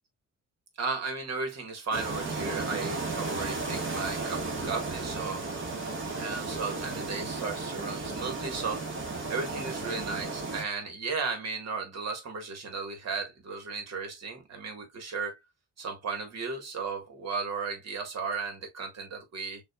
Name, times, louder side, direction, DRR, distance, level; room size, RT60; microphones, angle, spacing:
voice 1, 0.8-5.4 6.2-15.4 15.8-19.6, right 4 dB, 60° right, 1.7 m, -35 dB
sound 1, 1.9-10.6, right 3 dB, 40° right, 1.7 m, -34 dB
6.2 x 2.6 x 2.3 m
cardioid pair, 90°, 30 cm